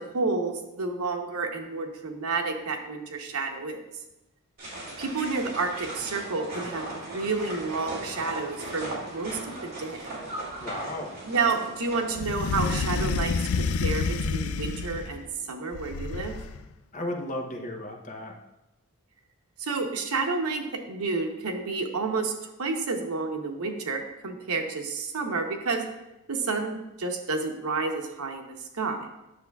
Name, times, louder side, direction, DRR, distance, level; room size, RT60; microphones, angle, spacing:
voice 1, 0.0-3.8 5.0-10.1 11.3-16.3 19.6-22.3 22.6-25.8 26.3-29.1, right 4 dB, 90° right, 4 dB, 0.9 m, -30 dB
sound 1, 4.6-13.0, right 1 dB, 45° right, 2.5 m, -38 dB
voice 2, 10.6-11.2 16.9-18.3, left 1 dB, 35° left, 3 dB, 0.8 m, -34 dB
sound 2, 12.1-15.2 15.7-16.6, left 4 dB, 70° left, 0.4 m, -28 dB
9.4 x 6.6 x 2.3 m, 0.95 s
head